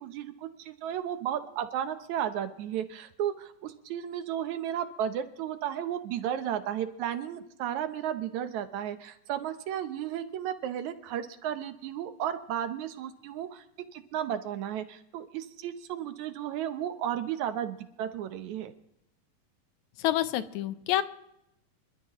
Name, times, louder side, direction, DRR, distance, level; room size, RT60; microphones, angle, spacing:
voice 1, 0.0-13.6 13.9-18.7, right 10 dB, 70° right, 10 dB, 2.0 m, -34 dB
voice 2, 20.0-21.0, left 14 dB, 75° left, 13 dB, 1.8 m, -27 dB
26.5 x 13.0 x 3.0 m, 0.82 s
omnidirectional pair, 4.0 m